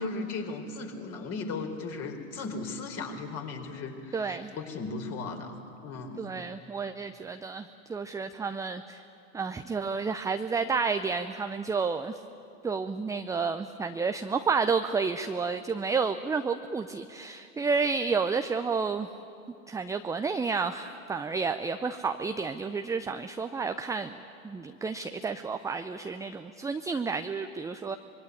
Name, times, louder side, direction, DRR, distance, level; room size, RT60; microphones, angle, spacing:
voice 1, 0.0-5.6 5.8-6.2, left 3 dB, 35° left, 4 dB, 4.3 m, -36 dB
voice 2, 4.1-4.5 6.2-9.0 9.3-12.2 12.6-19.1 19.7-24.2 24.4-28.0, right 5 dB, 10° right, 8 dB, 0.6 m, -30 dB
25.5 x 22.5 x 9.6 m, 2.6 s
figure-of-eight pair, 95°, 42 cm